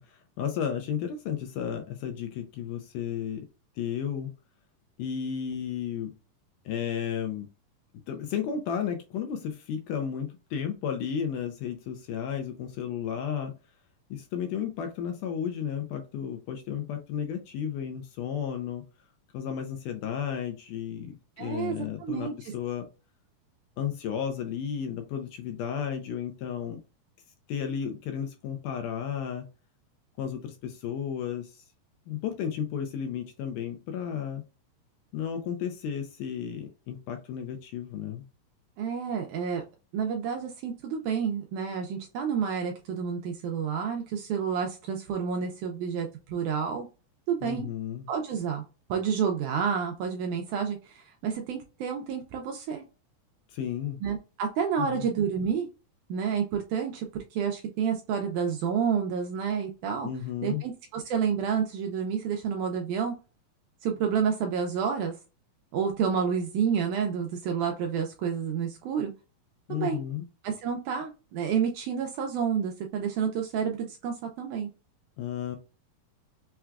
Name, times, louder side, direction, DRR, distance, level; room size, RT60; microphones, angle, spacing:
voice 1, 0.0-3.5 3.8-4.3 5.0-6.1 6.7-7.5 8.1-13.5 14.1-18.8 19.3-22.9 23.8-26.8 27.5-29.5 30.2-31.6 32.1-34.4 35.1-38.2 47.4-48.1 53.5-54.0 54.8-55.1 60.0-60.6 69.7-70.3 75.2-75.6, left 8 dB, 80° left, 5 dB, 1.9 m, -33 dB
voice 2, 21.4-22.5 38.8-39.6 39.9-46.9 47.3-47.7 48.1-48.6 48.9-52.8 54.0-55.7 56.1-60.1 60.4-63.1 63.8-65.1 65.7-69.1 69.7-70.0 70.4-74.7, right 7 dB, 80° right, 2 dB, 1.8 m, -29 dB
5.8 x 2.2 x 2.3 m, 0.31 s
omnidirectional pair, 4.0 m